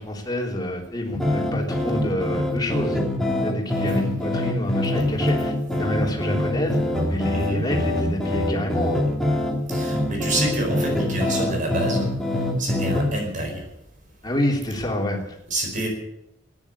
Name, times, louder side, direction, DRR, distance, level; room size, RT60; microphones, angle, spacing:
voice 1, 0.0-3.0 3.4-6.8 7.1-9.0 14.2-15.3, left 1 dB, 25° left, 0 dB, 3.5 m, -27 dB
sound 1, 1.1-13.1, left 1 dB, 5° left, 2.8 m, -24 dB
voice 2, 9.7-12.1 12.6-13.6 15.5-15.9, right 1 dB, 45° right, 2 dB, 4.7 m, -27 dB
13.5 x 10.5 x 9.9 m, 0.79 s
head